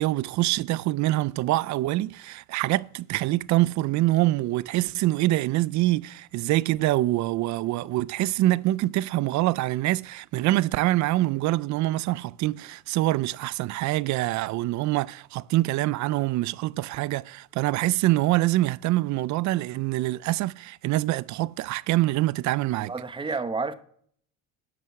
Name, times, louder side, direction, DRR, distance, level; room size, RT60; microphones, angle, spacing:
voice 1, 0.0-22.9, right 17 dB, 60° right, 0.5 m, -25 dB
voice 2, 22.8-23.7, right 4 dB, 15° right, 0.9 m, -30 dB
12.5 x 7.7 x 8.3 m
cardioid pair, 140°, 33 cm